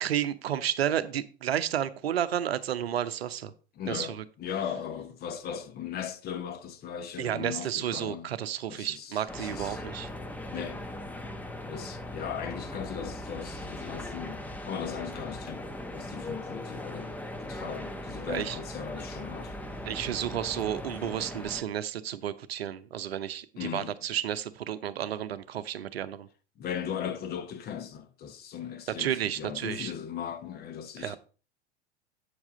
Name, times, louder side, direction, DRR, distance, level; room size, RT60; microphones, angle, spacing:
voice 1, 0.0-3.5 3.9-4.2 7.2-10.1 18.3-18.6 19.8-26.3 29.0-29.9 31.0-31.2, right 10 dB, 70° right, 0.7 m, -31 dB
voice 2, 3.8-8.3 8.7-9.8 10.5-10.9 11.7-19.6 23.6-23.9 26.6-31.2, left 8 dB, 30° left, 1.0 m, -38 dB
sound 1, 9.3-21.6, left 1 dB, 5° left, 0.8 m, -39 dB
8.6 x 7.2 x 3.7 m
figure-of-eight pair, 90°, 32 cm